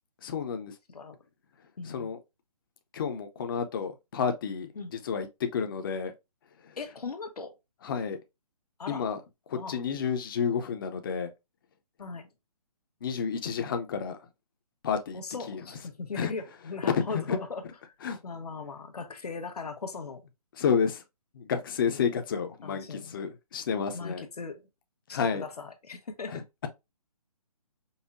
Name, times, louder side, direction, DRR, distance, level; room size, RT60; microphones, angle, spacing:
voice 1, 0.2-0.7 1.8-2.2 2.9-5.3 5.5-6.1 6.6-6.7 7.8-8.2 8.9-9.2 9.5-11.3 13.0-14.2 14.8-15.2 15.5-15.6 16.2-16.3 16.9-17.4 18.0-18.2 20.6-21.0 21.3-24.2 25.1-25.4 26.3-26.7, left 6 dB, 35° left, 0.7 m, -30 dB
voice 2, 1.8-2.1 4.7-4.9 6.8-7.5 8.8-9.1 9.5-9.8 12.0-12.3 15.1-17.9 18.2-20.3 21.9-22.0 22.6-23.2 23.9-24.7 25.1-26.4, left 4 dB, 85° left, 1.2 m, -39 dB
5.4 x 2.1 x 2.6 m
hypercardioid pair, 160°, 19 cm